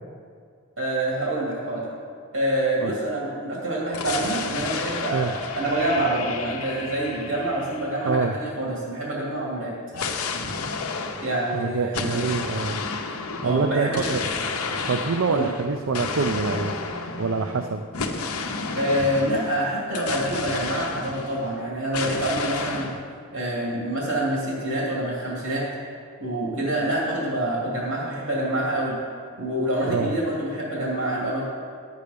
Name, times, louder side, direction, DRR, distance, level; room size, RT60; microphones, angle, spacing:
voice 1, 0.8-1.9 2.3-5.3 5.5-9.7 11.2-12.2 13.4-14.1 15.3-15.5 18.8-22.9 23.3-25.7 26.2-29.0 29.4-31.4, right 1 dB, 80° right, -5 dB, 2.5 m, -26 dB
sound 1, 3.9-8.6 9.9-21.6 21.9-23.0, left 4 dB, 80° left, 0.8 m, -32 dB
voice 2, 8.0-8.3 11.5-12.8 13.4-14.3 14.8-16.7 17.2-17.8 29.9-30.1, right 4 dB, 65° right, 6 dB, 0.4 m, -25 dB
10.5 x 8.3 x 5.1 m, 2.1 s
head